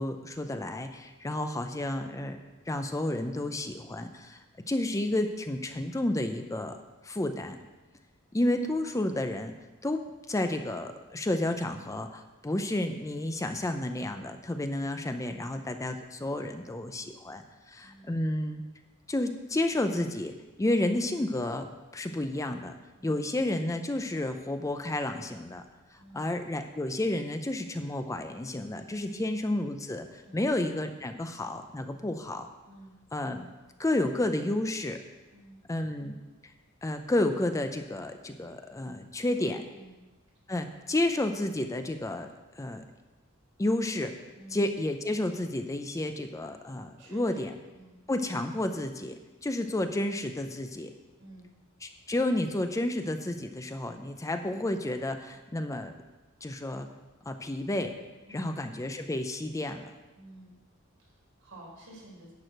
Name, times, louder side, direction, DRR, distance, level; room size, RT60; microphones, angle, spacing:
voice 1, 0.0-2.4 2.7-4.4 4.7-6.8 7.0-7.6 8.3-9.5 9.8-18.6 19.1-21.7 21.9-22.7 23.0-25.6 25.9-32.5 33.1-33.5 33.8-35.0 35.7-36.2 36.8-39.6 40.5-42.8 43.6-44.2 44.5-47.5 48.1-50.9 51.8-56.0 56.4-56.9 57.3-57.9 58.3-59.9, left 1 dB, 15° left, 7 dB, 0.5 m, -31 dB
voice 2, 17.8-18.2 23.0-23.3 25.9-26.4 29.1-29.4 30.2-30.6 32.6-33.0 35.3-35.6 39.3-40.1 44.4-44.6 47.0-47.4 47.7-48.0 51.2-51.5 58.3-58.6 60.1-60.5 61.0-62.3, right 1 dB, 75° right, -4 dB, 4.2 m, -51 dB
10.5 x 4.9 x 7.6 m, 1.1 s
head